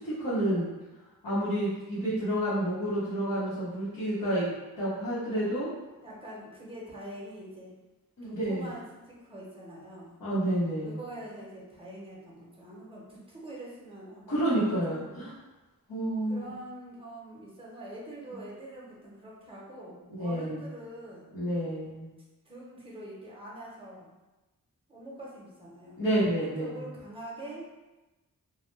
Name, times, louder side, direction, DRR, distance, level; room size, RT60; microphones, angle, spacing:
voice 1, 0.2-0.7 1.2-5.7 8.2-8.7 10.2-11.0 14.3-15.3 15.9-16.5 20.1-20.6 21.3-22.1 26.0-26.8, right 1 dB, 65° left, -12 dB, 0.9 m, -29 dB
voice 2, 6.0-7.7 8.2-10.2 10.8-15.1 16.3-21.4 22.4-24.1 24.9-26.0 26.6-27.6, right 1 dB, 15° right, -5 dB, 0.8 m, -44 dB
2.2 x 2.1 x 3.1 m, 1.1 s
wide cardioid pair, 75°, 34 cm